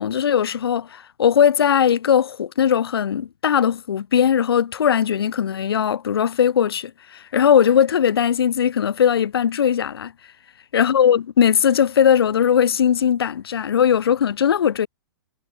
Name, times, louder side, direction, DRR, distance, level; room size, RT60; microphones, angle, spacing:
voice 1, 0.0-10.1 10.7-14.9, left 8 dB, 90° left, 4.8 m, -19 dB
hypercardioid pair, 170°, 12 cm